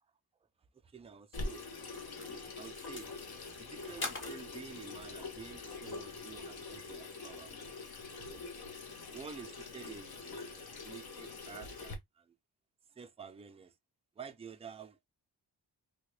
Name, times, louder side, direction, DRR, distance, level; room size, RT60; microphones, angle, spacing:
voice 1, 0.8-1.6 1.9-2.1 2.6-3.1 3.6-7.6 8.2-8.4 9.1-12.3 12.9-13.7 14.2-15.0, right 6 dB, 15° right, 0.3 m, -50 dB
Water tap faucet / Sink (filling or washing), 1.3-11.9, left 3 dB, 60° left, 0.9 m, -45 dB
sound 1, 1.9-6.6, left 2 dB, 30° left, 0.8 m, -47 dB
3.5 x 2.2 x 3.1 m
wide cardioid pair, 120°, 43 cm